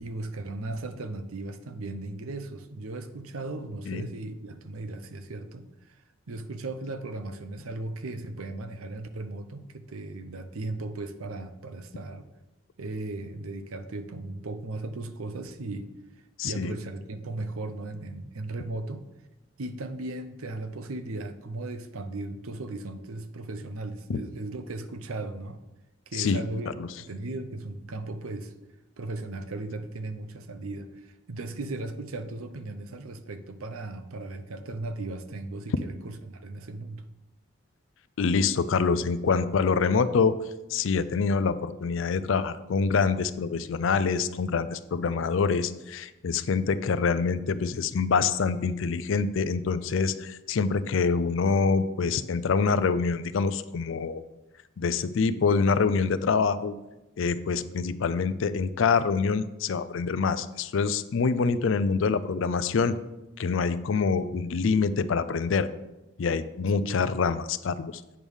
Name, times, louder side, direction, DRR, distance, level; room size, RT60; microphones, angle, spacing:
voice 1, 0.0-6.0 6.3-12.3 12.8-15.9 16.4-19.0 19.6-25.6 26.1-28.5 29.0-37.1 66.8-67.1, right 2 dB, 85° right, 9 dB, 0.7 m, -37 dB
voice 2, 16.4-16.7 24.1-24.2 26.2-26.4 26.8-26.9 38.2-40.4 40.7-54.2 54.8-56.7 57.2-63.0 63.4-65.7 66.2-68.0, left 5 dB, 65° left, 14 dB, 0.4 m, -25 dB
8.7 x 3.6 x 6.3 m, 0.98 s
head